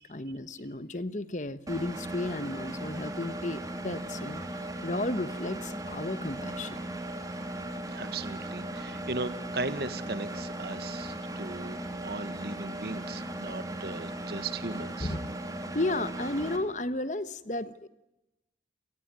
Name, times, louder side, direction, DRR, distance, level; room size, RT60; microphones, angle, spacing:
voice 1, 0.0-6.9 15.0-15.4 15.7-17.9, left 2 dB, 45° left, 14 dB, 1.2 m, -34 dB
Engine, 1.7-16.6, right 1 dB, 20° right, 2.9 m, -37 dB
voice 2, 7.9-15.2, right 3 dB, 60° right, 13 dB, 1.5 m, -37 dB
29.0 x 18.5 x 9.1 m, 0.95 s
head